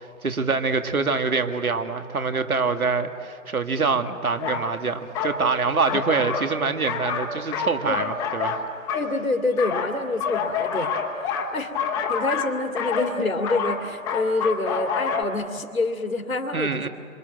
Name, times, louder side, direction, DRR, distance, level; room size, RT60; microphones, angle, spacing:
voice 1, 0.0-8.6 16.5-16.9, right 4 dB, 80° right, 7 dB, 2.2 m, -25 dB
sound 1, 4.4-4.7 5.1-5.4 5.9-6.5 6.9-9.1 9.6-15.2, left 6 dB, 10° left, 1.1 m, -27 dB
voice 2, 8.9-10.9 11.5-11.7 12.1-16.9, left 2 dB, 85° left, 4 dB, 2.5 m, -26 dB
28.0 x 26.5 x 7.9 m, 2.5 s
figure-of-eight pair, 145°, 42 cm